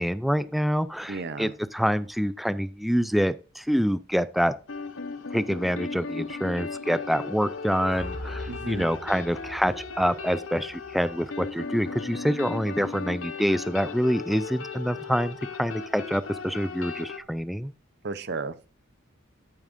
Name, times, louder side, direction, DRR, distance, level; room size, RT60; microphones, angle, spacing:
voice 1, 0.0-4.5 5.3-17.7, equal, ahead, 0.4 m, -26 dB
voice 2, 1.1-1.5 8.5-8.9 18.0-18.7, right 3 dB, 55° right, 0.7 m, -34 dB
sound 1, 4.7-17.2, left 4 dB, 80° left, 0.9 m, -37 dB
sound 2, 7.9-12.1, left 1 dB, 45° left, 1.5 m, -42 dB
10.5 x 8.7 x 2.6 m
head